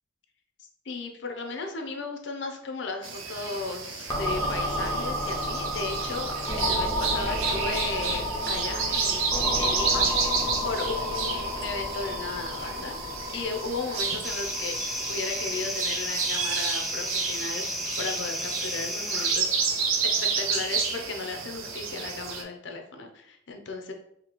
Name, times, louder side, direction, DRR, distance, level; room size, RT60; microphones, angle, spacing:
voice 1, 0.8-9.3 9.6-13.0 13.3-14.7 15.1-17.6 18.0-19.5 20.0-23.9, left 4 dB, 60° left, 4 dB, 0.6 m, -35 dB
sound 1, 3.0-22.4, right 5 dB, 90° right, 0.6 m, -31 dB
sound 2, 4.1-17.7, left 1 dB, 15° left, 0.7 m, -32 dB
sound 3, 14.2-19.4, equal, ahead, 0.3 m, -33 dB
3.0 x 2.7 x 4.1 m, 0.75 s
head